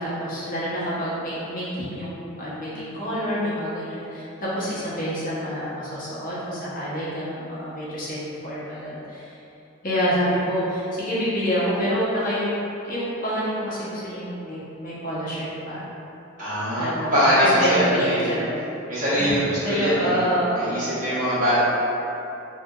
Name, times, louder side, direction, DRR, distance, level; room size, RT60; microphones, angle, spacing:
voice 1, 0.0-9.4 9.8-15.8 16.8-18.6 19.2-21.2, equal, 45° left, -10 dB, 0.8 m, -27 dB
voice 2, 16.4-18.3 18.9-20.2 20.6-21.6, equal, 40° right, -13 dB, 1.2 m, -22 dB
3.1 x 2.8 x 2.3 m, 2.9 s
head